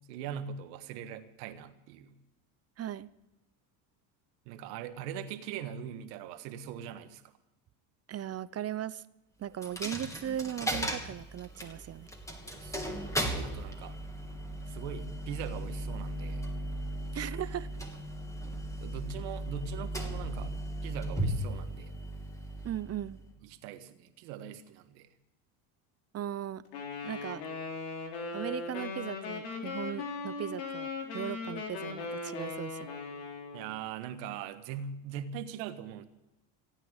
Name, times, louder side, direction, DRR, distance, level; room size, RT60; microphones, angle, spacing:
voice 1, 0.1-2.1 4.4-7.2 12.5-13.0 13.4-13.9 14.7-16.5 18.8-20.5 20.8-21.9 23.4-25.1 33.5-36.0, right 8 dB, 85° right, 9 dB, 1.6 m, -41 dB
voice 2, 2.8-3.1 8.1-9.0 9.4-12.1 17.1-17.7 22.6-23.2 26.1-26.6 27.0-27.4 28.3-32.9, right 11 dB, 30° right, 17 dB, 0.6 m, -37 dB
Coin (dropping), 9.6-23.3, right 1 dB, 5° left, 2.9 m, -37 dB
Wind instrument woodwind instrument, 26.7-33.7, left 4 dB, 80° left, 3.8 m, -38 dB
16.5 x 9.2 x 8.9 m, 0.95 s
supercardioid pair, 100°, 50 cm